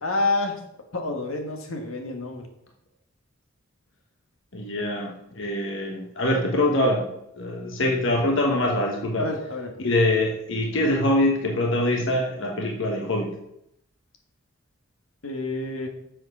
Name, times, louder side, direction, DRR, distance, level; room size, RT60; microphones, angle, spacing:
voice 1, 0.0-0.6 0.9-2.5 9.2-9.7 15.2-15.9, left 2 dB, 90° left, 3 dB, 1.7 m, -28 dB
voice 2, 4.5-7.1 7.3-9.3 9.8-13.3, left 1 dB, 65° left, 1 dB, 1.2 m, -24 dB
7.7 x 6.4 x 5.5 m, 0.79 s
head